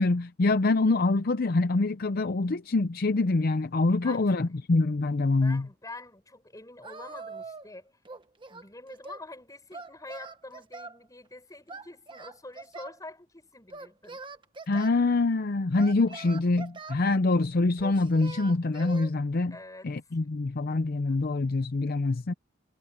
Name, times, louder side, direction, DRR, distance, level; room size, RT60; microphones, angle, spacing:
voice 1, 0.0-5.7 14.7-19.6 19.8-22.3, left 3 dB, 50° left, 0.6 m, -25 dB
voice 2, 4.0-4.4 5.3-7.9 8.5-14.2 19.5-19.9 20.2-20.3, left 2 dB, 20° left, 6.8 m, -46 dB
Singing, 6.8-7.7 8.0-9.3 9.7-11.0 11.7-13.0 13.7-14.9 15.8-17.0 17.8-19.1, right 3 dB, 25° right, 1.3 m, -43 dB
head